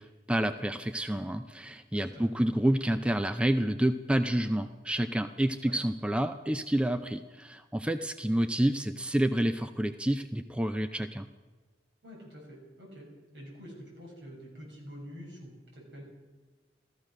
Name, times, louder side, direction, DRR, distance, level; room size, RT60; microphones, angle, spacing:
voice 1, 0.0-11.3, right 1 dB, 5° right, 9 dB, 0.4 m, -29 dB
voice 2, 12.0-13.1 13.3-16.0, equal, 75° right, -2 dB, 7.0 m, -47 dB
15.0 x 13.5 x 6.5 m, 1.4 s
head